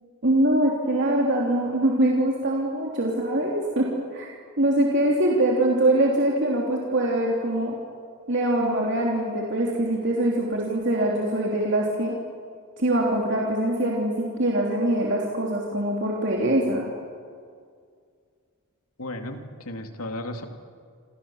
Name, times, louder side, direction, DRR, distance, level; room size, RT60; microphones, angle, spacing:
voice 1, 0.2-3.9 4.1-4.3 4.6-7.7 8.3-12.1 12.8-16.8, right 1 dB, 55° right, -2 dB, 3.3 m, -23 dB
voice 2, 19.0-20.5, left 1 dB, 85° left, 5 dB, 2.6 m, -34 dB
28.5 x 27.5 x 7.3 m, 2.2 s
head